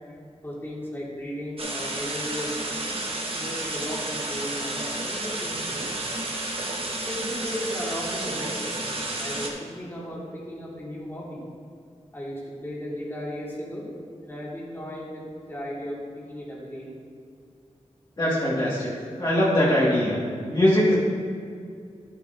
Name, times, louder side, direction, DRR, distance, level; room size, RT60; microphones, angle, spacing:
voice 1, 0.4-2.6 3.3-6.0 7.0-11.4 12.1-13.9 14.2-16.9, equal, 20° left, -6 dB, 2.0 m, -35 dB
sound 1, 1.6-9.5, right 2 dB, 50° right, 1.2 m, -31 dB
voice 2, 18.2-18.9 19.2-20.2 20.5-21.0, left 1 dB, 35° left, -8 dB, 1.7 m, -21 dB
11.5 x 7.6 x 2.6 m, 2.3 s
wide cardioid pair, 105°, 12 cm